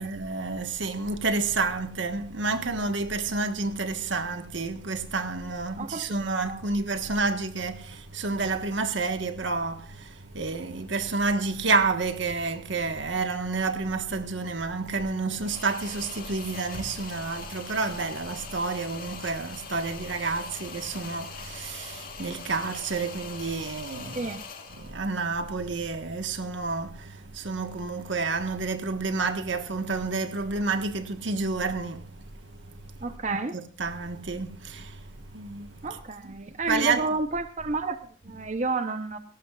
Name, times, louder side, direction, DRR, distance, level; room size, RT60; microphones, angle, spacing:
voice 1, 0.0-24.3 24.7-36.0 36.2-36.4 36.7-37.0, right 3 dB, 85° right, 1.5 m, -30 dB
voice 2, 5.8-6.6 24.1-24.4 33.0-33.6 35.8-39.2, right 3 dB, 40° right, 0.8 m, -31 dB
sound 1, 15.4-25.0, left 5 dB, 50° left, 2.1 m, -42 dB
18.0 x 18.0 x 2.4 m
head